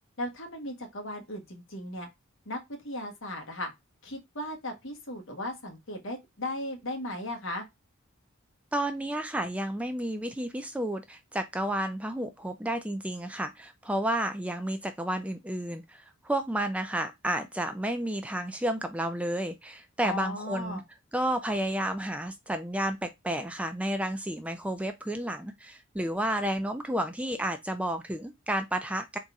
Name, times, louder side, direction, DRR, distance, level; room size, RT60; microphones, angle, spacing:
voice 1, 0.2-2.1 2.4-3.7 4.0-7.6 20.0-20.8, left 1 dB, 60° left, 1.3 m, -36 dB
voice 2, 8.7-20.8 21.1-29.2, right 1 dB, 5° right, 0.3 m, -31 dB
4.1 x 2.5 x 4.6 m
head